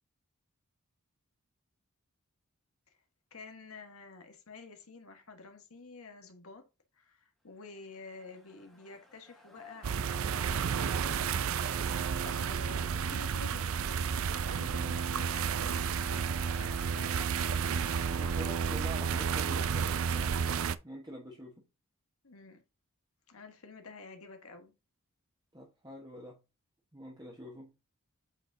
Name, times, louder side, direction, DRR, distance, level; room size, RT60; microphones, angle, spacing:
voice 1, 3.3-6.7 6.9-11.3 12.2-18.1 22.2-22.6 23.3-24.7, left 3 dB, 80° left, 1.5 m, -50 dB
sound 1, 7.7-18.5, left 1 dB, ahead, 1.5 m, -54 dB
sound 2, 9.8-20.8, right 6 dB, 70° right, 0.5 m, -31 dB
voice 2, 18.1-20.5 20.8-21.6 25.5-26.4 26.9-27.7, equal, 20° right, 1.3 m, -46 dB
8.0 x 4.5 x 2.8 m
head